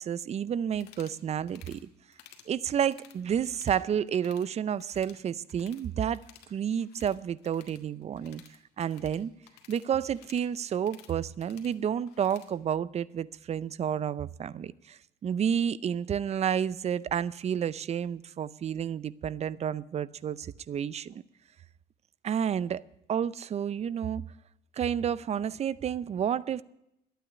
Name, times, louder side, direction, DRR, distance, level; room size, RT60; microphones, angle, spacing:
voice 1, 0.0-1.8 2.5-6.2 6.5-8.4 8.8-9.3 9.7-21.2 22.2-22.8 23.1-24.2 24.7-26.6, right 8 dB, 40° right, 0.6 m, -30 dB
sound 1, 0.7-1.2 1.5-1.8 2.1-2.5 2.8-3.8 4.1-4.5 4.8-5.9 6.1-12.5, left 10 dB, 90° left, 1.7 m, -56 dB
12.0 x 9.2 x 9.8 m
cardioid pair, 110°, 17 cm